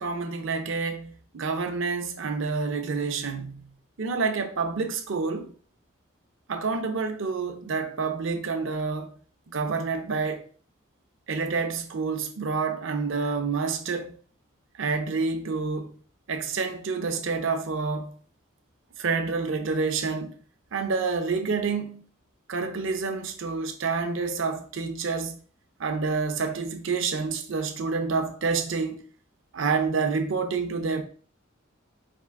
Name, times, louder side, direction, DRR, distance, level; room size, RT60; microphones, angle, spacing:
voice 1, 0.0-5.5 6.5-9.1 9.5-10.4 11.3-14.1 14.8-15.9 16.3-18.1 19.0-20.4 20.7-22.1 22.5-25.4 25.8-29.0 29.5-31.0, right 4 dB, 65° right, 0.6 m, -28 dB
4.3 x 2.5 x 3.5 m
head